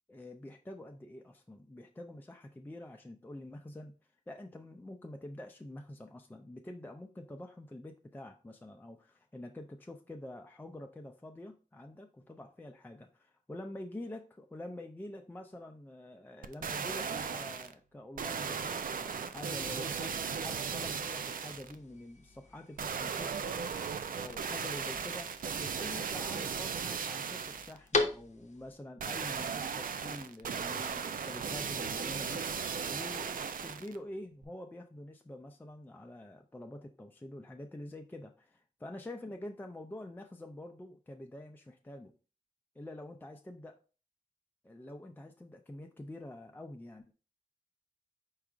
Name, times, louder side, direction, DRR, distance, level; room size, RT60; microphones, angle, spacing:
voice 1, 0.1-3.9 4.3-23.6 23.9-32.5 32.8-42.1 42.8-43.7 44.6-47.1, left 1 dB, 15° left, 4 dB, 0.4 m, -47 dB
sound 1, 16.4-17.7 18.2-21.8 22.8-27.8 29.0-34.0 34.4-34.5, right 6 dB, 85° right, 0.4 m, -37 dB
sound 2, 20.3-28.8, left 3 dB, 55° left, 0.7 m, -41 dB
4.6 x 2.4 x 4.8 m, 0.35 s
wide cardioid pair, 95°, 14 cm